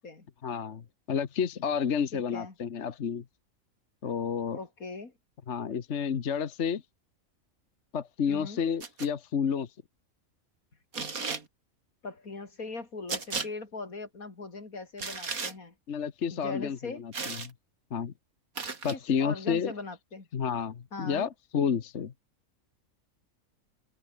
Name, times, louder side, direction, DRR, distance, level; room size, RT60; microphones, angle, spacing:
voice 1, 0.4-3.2 4.0-4.6 5.5-6.8 7.9-9.7 15.9-17.5 17.9-18.1 18.8-19.7 20.3-22.1, left 7 dB, 55° left, 1.4 m, -30 dB
voice 2, 2.1-2.5 4.5-5.1 8.3-8.6 12.0-15.7 16.3-17.0 18.9-20.3 20.9-21.3, left 3 dB, 85° left, 4.0 m, -40 dB
Schritte - Schuhe kratzen auf Steinboden, 8.8-9.1 10.9-11.5 13.1-13.5 15.0-15.5 17.1-17.5 18.6-19.0, right 4 dB, 85° right, 3.0 m, -34 dB
omnidirectional pair, 1.4 m